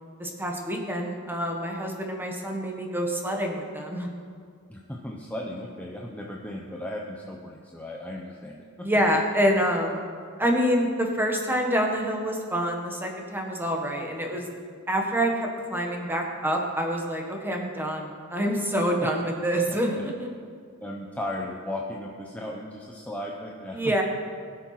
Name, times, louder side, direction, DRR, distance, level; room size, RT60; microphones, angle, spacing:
voice 1, 0.2-4.1 8.8-10.0 10.4-14.5 14.9-20.3 23.7-24.0, equal, 10° right, 1 dB, 1.6 m, -26 dB
voice 2, 4.7-8.9 19.9-20.0 20.8-24.0, left 1 dB, 5° left, -2 dB, 0.9 m, -36 dB
20.0 x 7.2 x 5.9 m, 2.1 s
head